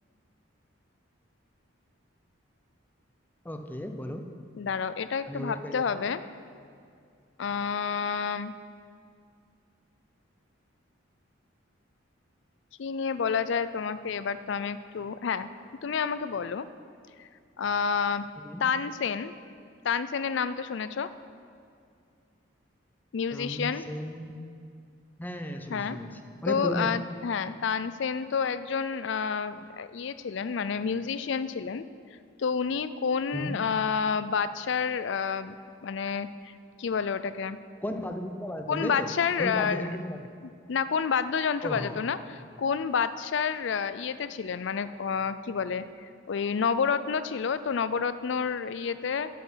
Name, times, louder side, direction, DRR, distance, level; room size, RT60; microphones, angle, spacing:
voice 1, 3.4-4.2 5.3-6.0 18.4-18.6 23.3-24.3 25.2-26.9 33.3-33.6 36.1-36.2 37.8-40.3 41.6-42.1, equal, 10° left, 5 dB, 0.6 m, -35 dB
voice 2, 4.6-6.2 7.4-8.5 12.8-15.5 15.8-16.7 17.2-17.3 17.6-18.3 18.6-19.3 19.8-21.1 23.1-23.9 25.7-26.0 26.5-31.8 32.4-35.6 35.8-36.5 36.8-37.6 38.7-39.9 40.7-49.3, left 6 dB, 60° left, 13 dB, 0.4 m, -29 dB
11.5 x 7.7 x 5.7 m, 2.3 s
head